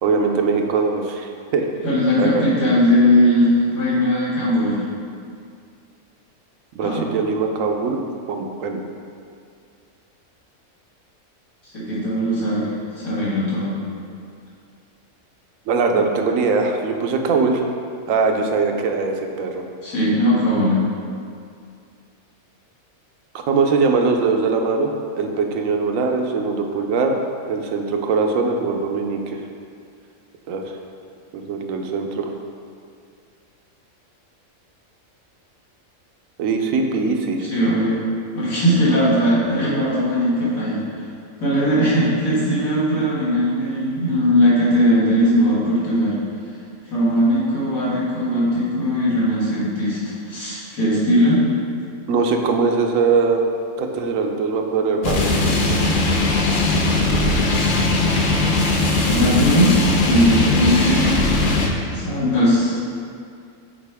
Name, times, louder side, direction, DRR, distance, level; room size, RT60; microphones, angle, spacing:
voice 1, 0.0-1.6 2.2-2.4 6.7-8.0 8.3-8.8 15.7-17.6 18.1-19.6 23.5-27.1 27.5-29.4 30.5-30.7 31.3-32.3 36.4-37.5 52.1-53.5 53.8-55.5, right 4 dB, 75° right, 3 dB, 1.0 m, -21 dB
voice 2, 1.8-4.9 6.8-7.0 11.7-12.7 13.0-13.8 19.8-20.8 37.5-38.0 38.3-40.8 41.4-46.2 46.9-51.4 59.0-61.3 61.9-63.0, equal, 85° left, -9 dB, 2.2 m, -19 dB
sound 1, 55.0-61.7, left 2 dB, 50° left, 0.6 m, -19 dB
7.4 x 4.3 x 3.4 m, 2.3 s
omnidirectional pair, 1.4 m